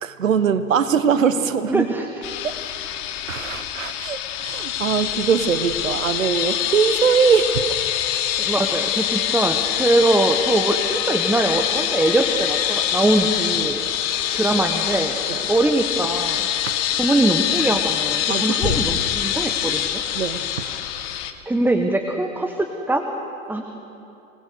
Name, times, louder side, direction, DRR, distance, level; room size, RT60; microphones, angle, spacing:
voice 1, 0.0-1.9 2.4-2.6 3.3-7.7 15.3-15.4 16.6-16.7 18.3-18.8 20.1-20.7, right 6 dB, 75° right, 12 dB, 1.3 m, -22 dB
voice 2, 1.7-2.1 8.4-13.8 14.3-15.2 15.5-16.5 17.0-20.0 21.5-23.0 23.5-23.6, right 2 dB, 5° right, 4 dB, 1.2 m, -22 dB
sound 1, 2.2-21.3, left 11 dB, 45° left, 1.6 m, -24 dB
26.0 x 19.5 x 6.6 m, 2.9 s
figure-of-eight pair, 90°, 39 cm